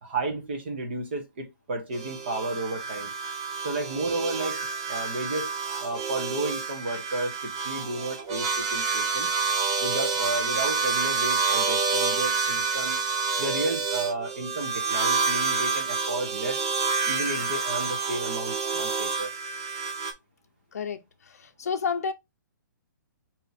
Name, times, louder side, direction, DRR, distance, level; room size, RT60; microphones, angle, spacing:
voice 1, 0.0-3.1 3.6-5.5 5.8-9.3 9.8-13.0 13.4-16.6 17.0-19.3, right 2 dB, 35° right, 1.2 m, -32 dB
sound 1, 1.9-20.1, right 5 dB, 15° right, 0.4 m, -28 dB
voice 2, 21.4-22.1, left 6 dB, 50° left, 0.7 m, -29 dB
4.2 x 2.9 x 4.1 m
hypercardioid pair, 180°, 10 cm